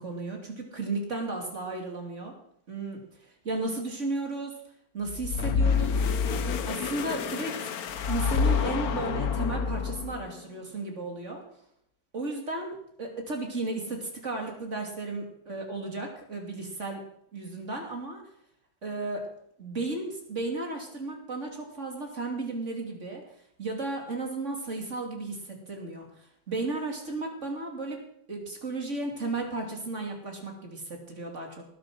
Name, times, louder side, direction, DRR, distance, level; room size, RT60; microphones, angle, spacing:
voice 1, 0.0-2.4 2.7-3.0 3.4-4.6 4.9-6.0 6.7-7.7 8.1-11.4 12.1-17.0 17.3-18.2 18.8-19.3 19.6-23.2 23.6-31.7, right 3 dB, 35° right, 1 dB, 3.1 m, -34 dB
sound 1, 5.1-10.3, left 6 dB, 55° left, 1.1 m, -28 dB
19.0 x 7.9 x 6.2 m, 0.72 s
omnidirectional pair, 2.3 m